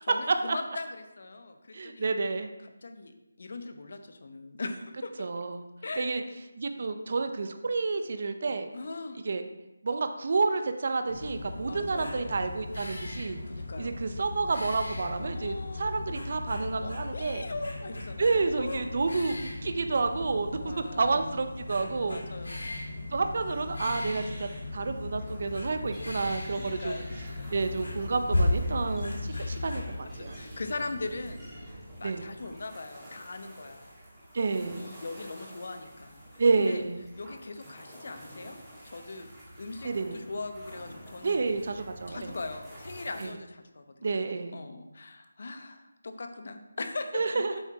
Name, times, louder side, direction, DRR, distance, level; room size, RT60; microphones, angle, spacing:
voice 1, 0.0-2.1 2.6-5.3 5.8-6.2 8.7-9.2 11.6-12.4 13.5-13.9 15.2-15.9 16.6-18.9 20.6-21.2 22.0-22.7 26.5-27.5 30.1-31.5 32.0-33.9 34.8-36.8 37.2-38.6 38.8-39.3 39.6-41.4 42.1-47.6, left 3 dB, 55° left, 7 dB, 0.8 m, -40 dB
voice 2, 1.7-2.5 5.2-5.6 5.9-6.2 6.6-8.7 9.2-9.4 9.8-13.4 13.8-17.4 18.2-22.2 23.1-27.0 27.5-30.4 32.0-32.3 34.3-34.9 36.4-37.0 39.8-40.2 41.2-42.3 43.2-43.3 44.0-44.6 47.1-47.6, right 3 dB, 50° right, 7 dB, 0.6 m, -29 dB
sound 1, 11.1-29.8, left 2 dB, 80° left, 2.2 m, -36 dB
sound 2, 23.3-43.2, right 1 dB, 5° right, 2.0 m, -47 dB
7.9 x 4.6 x 4.6 m, 1.0 s
figure-of-eight pair, 165°, 0 cm